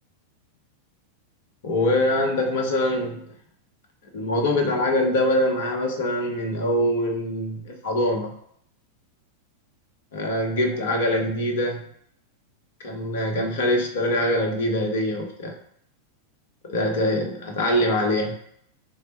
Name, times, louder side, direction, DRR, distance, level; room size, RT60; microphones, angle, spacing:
voice 1, 1.6-3.2 4.1-8.3 10.1-11.8 12.8-15.5 16.7-18.4, left 1 dB, 55° left, 1 dB, 0.8 m, -23 dB
3.3 x 2.0 x 4.0 m, 0.67 s
figure-of-eight pair, 90°, 0 cm